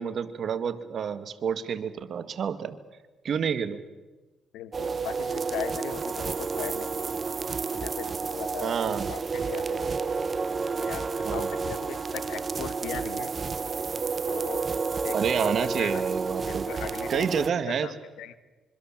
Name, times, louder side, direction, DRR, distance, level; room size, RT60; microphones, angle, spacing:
voice 1, 0.0-2.8 3.2-3.8 8.6-9.1 11.2-11.5 15.1-16.7 17.1-17.9, right 7 dB, 60° right, 11 dB, 1.8 m, -29 dB
voice 2, 4.5-7.1 7.7-10.0 10.7-13.3 14.3-14.6 15.0-16.1 16.5-18.4, left 11 dB, 90° left, 13 dB, 1.5 m, -39 dB
sound 1, 4.7-17.5, right 4 dB, 40° right, 0.9 m, -30 dB
25.5 x 24.5 x 7.4 m, 1.2 s
cardioid pair, 90°, 0 cm